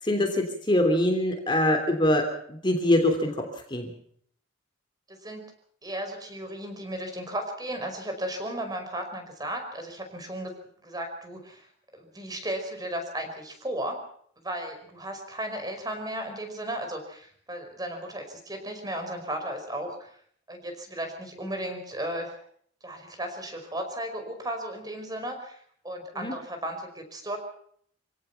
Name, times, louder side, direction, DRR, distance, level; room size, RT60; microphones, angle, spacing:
voice 1, 0.0-3.4 3.7-3.9 26.2-26.3, left 1 dB, 25° left, 4 dB, 3.1 m, -24 dB
voice 2, 5.1-5.4 5.8-10.5 10.8-11.7 11.9-14.0 14.4-20.1 20.5-22.4 22.8-27.4, right 1 dB, 20° right, 5 dB, 5.3 m, -35 dB
27.5 x 17.5 x 5.8 m, 0.63 s
head